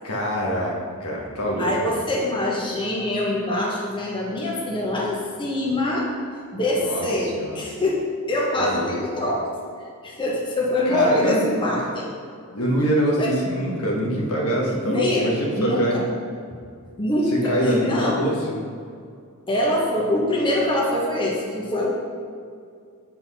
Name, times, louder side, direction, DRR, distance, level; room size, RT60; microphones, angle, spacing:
voice 1, 0.0-1.7 6.8-7.0 7.3-7.6 8.6-8.9 10.8-11.4 12.5-16.0 17.3-18.6, equal, 75° left, -3 dB, 1.5 m, -24 dB
voice 2, 1.6-6.1 6.5-9.4 9.8-12.1 13.2-13.3 14.8-16.0 17.0-18.2 19.5-21.9, left 1 dB, 20° left, -4 dB, 1.0 m, -24 dB
7.8 x 4.4 x 5.5 m, 2.3 s
head